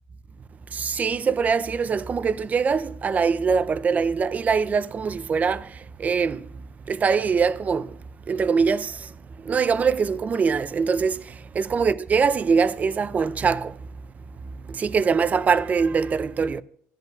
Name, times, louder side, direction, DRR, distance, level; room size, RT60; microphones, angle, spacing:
voice 1, 0.7-5.7 6.0-6.5 6.9-7.9 8.3-9.1 9.4-13.8 14.7-16.6, right 5 dB, 30° right, 0.5 m, -23 dB
15.0 x 10.5 x 2.3 m
cardioid pair, 120°, 5 cm